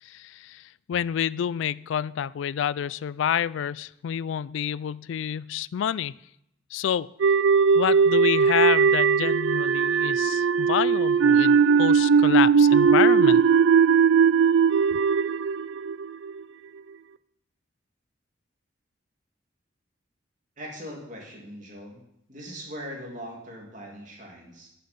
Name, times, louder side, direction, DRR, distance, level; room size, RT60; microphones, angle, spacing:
voice 1, 0.0-0.6 0.9-6.1 6.7-7.1 7.7-13.4, left 9 dB, 75° left, 0.3 m, -28 dB
sound 1, 7.2-16.4, right 6 dB, 75° right, 0.4 m, -19 dB
voice 2, 20.6-22.0 22.3-24.7, equal, 40° right, 2.7 m, -40 dB
12.5 x 6.9 x 5.3 m
head